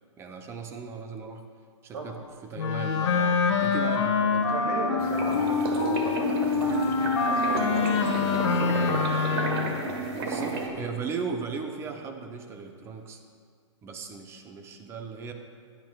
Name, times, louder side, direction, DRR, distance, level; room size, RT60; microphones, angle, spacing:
voice 1, 0.2-1.4 1.8-2.2 2.4-4.6 10.1-13.2 13.8-15.3, right 5 dB, 15° right, 5 dB, 0.7 m, -37 dB
Wind instrument woodwind instrument, 2.6-9.8, left 5 dB, 65° left, 1.1 m, -25 dB
voice 2, 4.2-9.3 10.4-10.9, right 2 dB, 85° right, -1 dB, 2.8 m, -37 dB
sound 1, 5.0-10.7, right 3 dB, 50° right, 1.6 m, -32 dB
15.0 x 10.5 x 2.4 m, 2.1 s
hypercardioid pair, 145°, 16 cm